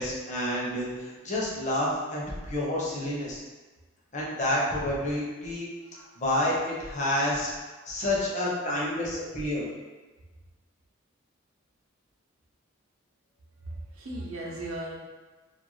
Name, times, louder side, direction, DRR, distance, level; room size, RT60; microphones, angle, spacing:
voice 1, 0.0-3.4 4.1-5.7 6.2-7.5 7.9-9.7, left 1 dB, 35° left, -5 dB, 0.7 m, -29 dB
voice 2, 5.8-6.2 7.8-8.0 9.0-9.1 13.6-15.0, right 1 dB, 85° right, -3 dB, 0.6 m, -38 dB
2.5 x 2.2 x 3.0 m, 1.3 s
head